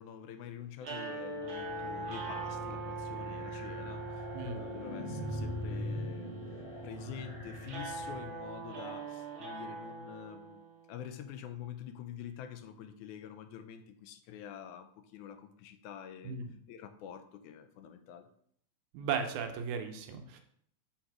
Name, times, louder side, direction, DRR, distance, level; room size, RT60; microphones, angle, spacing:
voice 1, 0.0-4.3 4.5-6.3 6.8-10.6 10.9-16.4 16.7-18.3, left 9 dB, 85° left, 8 dB, 2.0 m, -47 dB
sound 1, 0.8-11.0, right 3 dB, 60° right, 1.4 m, -42 dB
sound 2, 1.3-8.7, left 1 dB, 50° left, 1.0 m, -42 dB
voice 2, 18.9-20.4, right 6 dB, 80° right, 5 dB, 2.0 m, -36 dB
6.3 x 4.0 x 4.6 m, 0.65 s
omnidirectional pair, 3.5 m